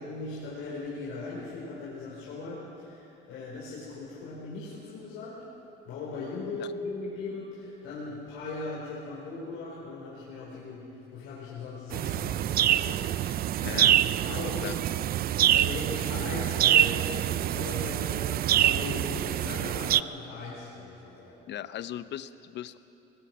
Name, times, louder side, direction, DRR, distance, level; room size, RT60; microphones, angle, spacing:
voice 1, 0.0-5.4 5.8-13.0 13.7-14.8 15.2-21.4, left 3 dB, 80° left, -7 dB, 5.0 m, -39 dB
sound 1, 11.9-20.0, right 12 dB, 45° right, 0.4 m, -25 dB
voice 2, 13.6-13.9 14.3-14.8 21.5-22.8, left 11 dB, 60° left, 13 dB, 0.8 m, -38 dB
21.0 x 20.0 x 6.3 m, 2.9 s
cardioid pair, 115°, 21 cm